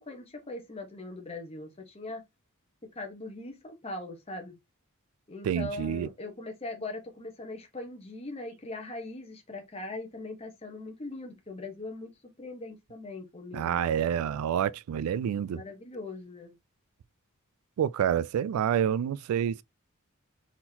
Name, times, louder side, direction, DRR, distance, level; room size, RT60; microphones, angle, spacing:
voice 1, 0.0-2.2 2.9-4.5 5.3-12.1 12.4-14.0 15.5-16.5, left 2 dB, 30° left, 1.2 m, -40 dB
voice 2, 5.4-6.1 13.5-15.6 17.8-19.6, right 9 dB, 80° right, 0.3 m, -28 dB
4.3 x 3.7 x 2.8 m
head